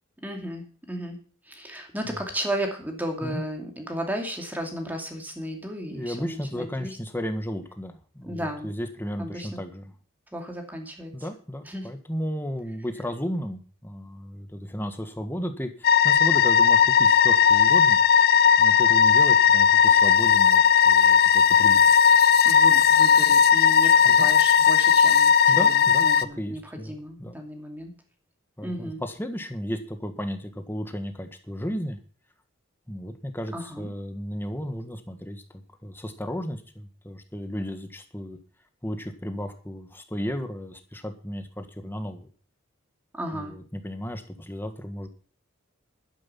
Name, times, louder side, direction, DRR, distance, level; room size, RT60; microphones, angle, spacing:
voice 1, 0.2-1.2 1.5-7.0 8.3-8.7 9.2-9.6 10.3-11.1 11.6-11.9 22.4-27.9 28.6-29.0 33.5-33.9 43.1-43.5, equal, 10° right, 3 dB, 2.6 m, -34 dB
voice 2, 5.9-9.9 11.1-18.0 18.6-22.0 24.0-24.3 25.5-27.4 28.6-32.0 32.9-38.4 38.8-42.3 43.3-45.1, equal, 10° left, 7 dB, 1.5 m, -34 dB
sound 1, 15.8-26.3, left 7 dB, 45° left, 0.6 m, -17 dB
12.0 x 9.9 x 5.8 m, 0.42 s
head